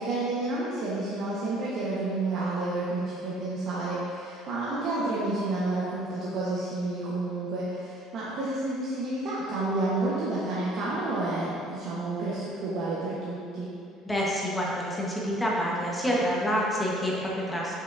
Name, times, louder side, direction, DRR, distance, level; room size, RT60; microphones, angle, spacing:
voice 1, 0.0-13.7, right 2 dB, 50° right, -8 dB, 1.2 m, -30 dB
voice 2, 14.0-17.7, equal, 10° left, -5 dB, 1.2 m, -27 dB
7.3 x 7.0 x 2.7 m, 2.4 s
cardioid pair, 150°, 0 cm